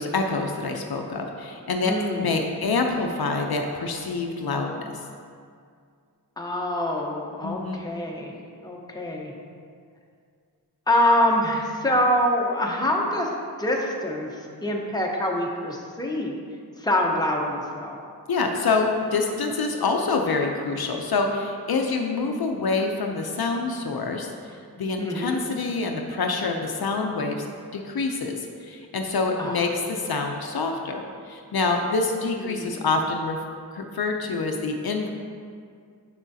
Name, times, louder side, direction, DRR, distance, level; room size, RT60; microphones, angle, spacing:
voice 1, 0.0-4.7 7.4-7.8 18.3-27.5 27.7-33.4 33.7-35.1, left 3 dB, 70° left, 3 dB, 0.6 m, -26 dB
voice 2, 1.8-2.3 6.4-8.3 8.6-9.3 10.9-13.3 13.6-16.4 16.8-18.0 25.0-25.4 29.4-29.5 32.4-32.9, left 1 dB, 10° left, -1 dB, 0.8 m, -25 dB
7.1 x 6.1 x 2.7 m, 2.2 s
wide cardioid pair, 50°, 39 cm